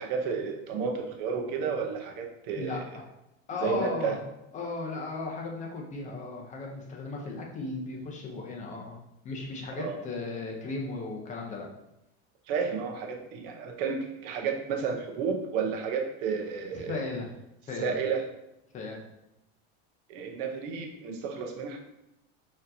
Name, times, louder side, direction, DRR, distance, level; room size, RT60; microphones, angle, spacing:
voice 1, 0.0-2.8 3.5-4.1 9.7-10.0 12.5-17.0 17.8-18.2 20.1-21.8, right 6 dB, 65° right, 3 dB, 0.8 m, -32 dB
voice 2, 2.5-3.0 3.5-4.2 4.5-9.0 9.2-11.7 16.7-17.3 17.7-17.9 18.7-19.0, left 3 dB, 20° left, -1 dB, 0.6 m, -36 dB
4.3 x 2.9 x 2.6 m, 0.88 s
supercardioid pair, 150°, 33 cm